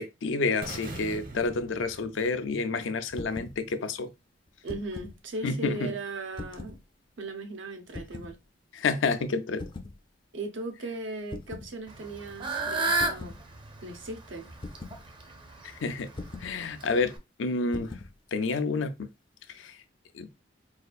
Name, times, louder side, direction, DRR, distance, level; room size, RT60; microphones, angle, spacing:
voice 1, 0.0-4.1 5.4-5.9 8.7-9.6 15.8-16.1 16.4-18.0 18.3-19.1 19.5-19.8 20.1-20.3, left 4 dB, 80° left, 0.5 m, -29 dB
sound 1, 0.6-2.7, right 1 dB, 50° right, 1.0 m, -42 dB
sound 2, 3.1-3.6 4.5-5.2 6.3-6.8 7.9-8.3 9.6-10.0 11.3-11.7 12.9-13.4 14.6-15.0 16.1-16.5 17.7-18.1, left 2 dB, 25° left, 0.4 m, -40 dB
voice 2, 4.6-6.8 7.2-8.4 10.3-13.3 13.8-14.5, right 2 dB, 75° right, 0.8 m, -37 dB
Fowl / Bird, 11.9-17.2, right 2 dB, 25° right, 0.6 m, -33 dB
4.1 x 2.4 x 2.3 m
head